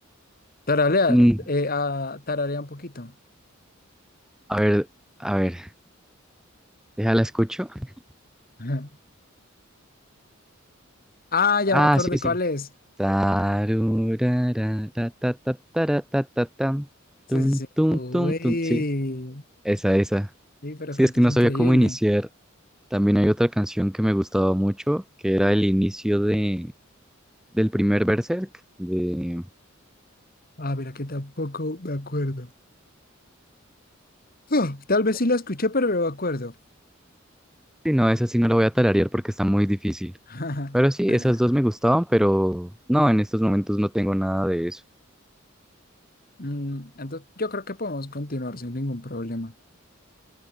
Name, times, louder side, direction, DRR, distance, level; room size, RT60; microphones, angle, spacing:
voice 1, 0.7-3.1 8.6-8.9 11.3-12.7 17.3-19.4 20.6-22.0 30.6-32.5 34.5-36.5 40.3-40.8 41.1-41.4 46.4-49.5, left 2 dB, 45° left, 2.4 m, -27 dB
voice 2, 4.5-4.9 5.2-5.7 7.0-7.8 11.7-12.3 13.0-16.9 17.3-18.8 19.6-20.3 21.0-22.3 22.9-26.7 27.5-28.5 28.8-29.4 37.8-40.1 40.7-44.8, equal, 5° right, 0.6 m, -22 dB
head